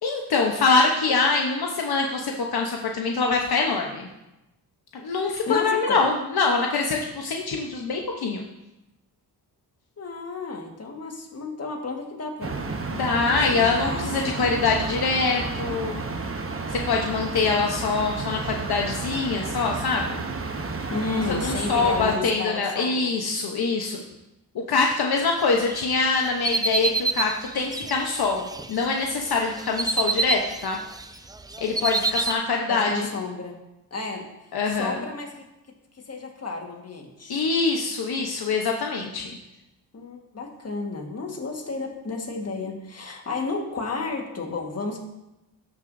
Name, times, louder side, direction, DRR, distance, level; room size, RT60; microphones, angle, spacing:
voice 1, 0.0-4.1 4.9-8.4 12.9-16.0 16.7-20.2 21.4-24.0 24.5-30.8 31.6-33.1 34.5-35.0 37.3-39.3, left 4 dB, 65° left, 1 dB, 1.0 m, -24 dB
voice 2, 5.5-6.1 10.0-12.6 13.3-14.3 20.9-23.1 32.7-33.6 33.9-35.5 35.9-37.4 39.9-45.0, left 3 dB, 35° left, 2 dB, 1.6 m, -32 dB
sound 1, 12.4-22.2, right 3 dB, 35° right, 0.9 m, -31 dB
sound 2, 25.6-28.8 29.3-31.0 31.3-32.3, right 3 dB, 10° right, 0.4 m, -27 dB
13.0 x 6.1 x 2.7 m, 0.93 s
cardioid pair, 85°, 41 cm